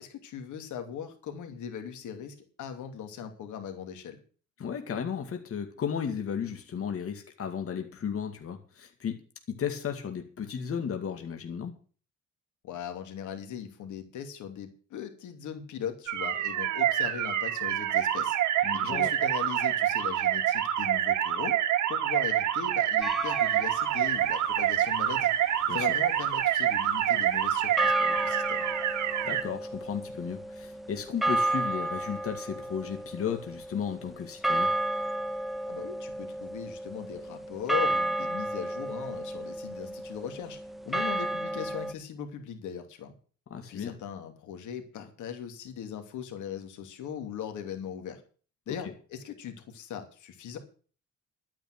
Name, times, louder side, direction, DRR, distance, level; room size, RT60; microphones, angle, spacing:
voice 1, 0.0-4.2 12.6-18.4 18.7-21.6 21.9-25.3 25.7-28.6 35.7-40.6 40.9-43.1 43.7-48.2 48.7-50.6, left 8 dB, 85° left, 6 dB, 2.7 m, -39 dB
voice 2, 4.6-9.2 9.5-11.7 18.6-19.1 25.7-25.9 29.3-34.7 43.5-43.9 48.7-48.9, left 7 dB, 50° left, 5 dB, 2.3 m, -34 dB
sound 1, 16.1-29.4, right 11 dB, 90° right, 1.7 m, -27 dB
sound 2, 23.0-24.1 27.8-41.9, right 1 dB, ahead, 1.2 m, -32 dB
12.0 x 9.3 x 6.1 m, 0.40 s
cardioid pair, 115°, 29 cm